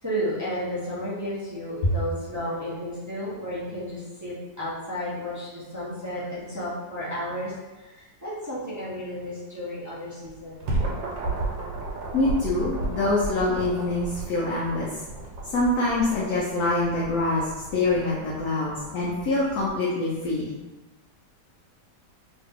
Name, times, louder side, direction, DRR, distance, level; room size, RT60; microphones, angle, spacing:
voice 1, 0.0-10.6, equal, 15° right, -10 dB, 0.6 m, -33 dB
sound 1, 10.2-19.7, right 2 dB, 85° right, 1.5 m, -33 dB
voice 2, 12.1-14.9 15.5-20.5, left 2 dB, 65° left, -6 dB, 1.0 m, -25 dB
3.1 x 2.8 x 3.5 m, 1.1 s
omnidirectional pair, 1.9 m